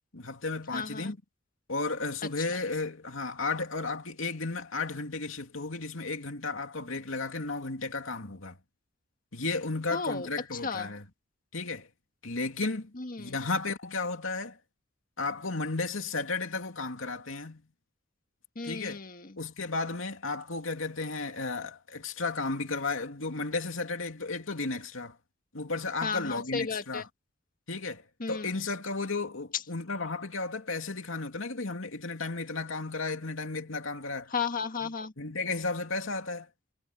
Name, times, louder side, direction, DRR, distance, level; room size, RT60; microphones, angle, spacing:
voice 1, 0.1-1.2 1.7-8.6 9.3-11.1 11.5-11.9 12.2-12.9 13.2-14.6 15.2-17.6 18.6-19.0 19.4-25.2 25.5-27.1 27.7-34.3 35.2-36.5, left 3 dB, 75° left, 2.7 m, -34 dB
voice 2, 0.7-1.1 9.9-10.9 13.0-13.4 18.5-19.4 26.0-27.0 28.2-28.5 34.3-35.1, left 5 dB, 45° left, 1.6 m, -34 dB
head